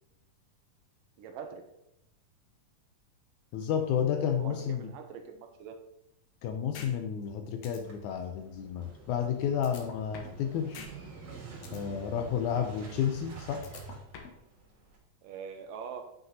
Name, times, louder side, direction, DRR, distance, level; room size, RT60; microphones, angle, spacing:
voice 1, 1.2-1.6 4.4-5.8 15.2-16.1, right 6 dB, 85° right, 6 dB, 2.4 m, -43 dB
voice 2, 3.5-4.9 6.4-10.9 11.7-13.7, left 8 dB, 80° left, 6 dB, 1.8 m, -31 dB
sound 1, 6.7-6.9 7.3-7.4 7.6-7.8 9.6-10.4 10.7-10.9 11.2-11.8 13.6-14.4, left 6 dB, 65° left, 2.0 m, -45 dB
Motorcycle / Engine starting, 7.8-15.0, right 4 dB, 55° right, 2.8 m, -47 dB
8.0 x 5.7 x 3.9 m, 0.82 s
omnidirectional pair, 3.9 m